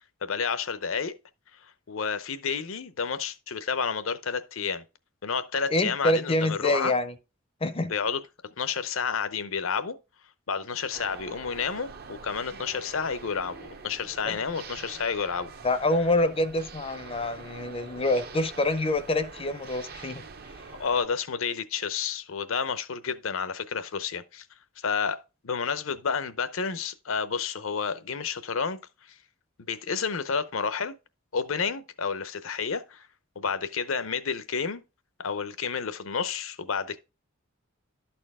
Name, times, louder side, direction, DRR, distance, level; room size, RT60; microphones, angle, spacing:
voice 1, 0.2-1.2 1.9-4.8 5.2-6.9 7.9-8.2 8.6-10.0 10.5-15.5 20.8-24.5 24.8-28.8 29.7-30.9 31.3-33.1 33.4-34.8 35.2-37.0, left 6 dB, 65° left, 0.7 m, -30 dB
voice 2, 5.7-7.1 7.6-7.9 14.2-14.4 15.6-20.2, left 2 dB, 25° left, 0.6 m, -26 dB
sound 1, 10.9-21.1, right 4 dB, 50° right, 0.8 m, -45 dB
11.5 x 4.4 x 3.6 m
head